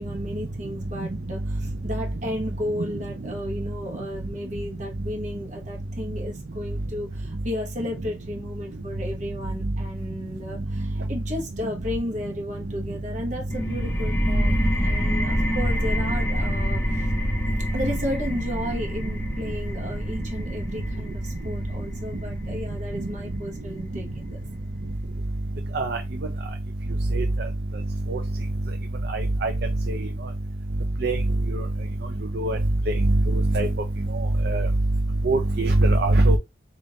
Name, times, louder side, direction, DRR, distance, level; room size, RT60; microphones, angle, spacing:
voice 1, 0.0-17.1 17.6-24.4, left 1 dB, 40° right, 1.0 m, -34 dB
sound 1, 13.5-24.9, equal, 15° left, 0.8 m, -27 dB
voice 2, 29.1-29.5 29.9-30.0 31.0-31.2 32.4-32.6 33.5-33.7 34.5-34.7 35.2-36.4, right 2 dB, 55° right, 0.5 m, -21 dB
3.6 x 2.5 x 3.9 m
head